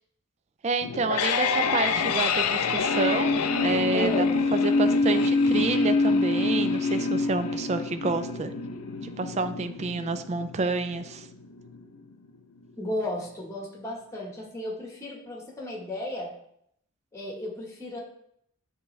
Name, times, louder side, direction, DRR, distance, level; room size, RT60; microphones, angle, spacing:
voice 1, 0.6-4.3 4.5-8.5 9.0-11.3, right 3 dB, 30° right, 10 dB, 0.3 m, -29 dB
sound 1, 0.8-11.8, left 3 dB, 85° left, 0.5 m, -26 dB
voice 2, 3.9-4.4 12.8-16.3 17.1-18.0, left 1 dB, 15° left, -2 dB, 1.2 m, -34 dB
9.2 x 3.5 x 3.2 m, 0.73 s
head